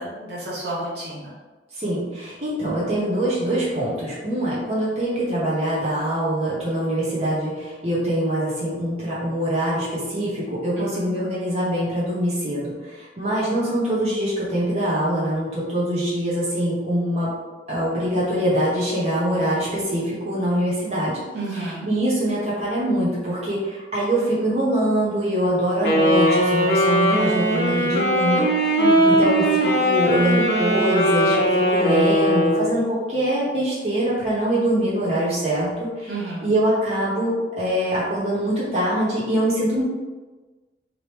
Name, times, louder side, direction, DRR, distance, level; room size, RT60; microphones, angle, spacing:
voice 1, 0.0-1.3 10.8-11.2 21.3-21.9 28.8-29.2 36.1-36.5, right 2 dB, 65° right, -5 dB, 1.1 m, -31 dB
voice 2, 1.7-17.3 17.7-21.2 21.5-28.5 29.0-39.8, right 1 dB, 35° right, -8 dB, 1.0 m, -23 dB
Wind instrument woodwind instrument, 25.8-32.8, equal, 65° left, 0.8 m, -19 dB
3.8 x 3.1 x 3.4 m, 1.2 s
head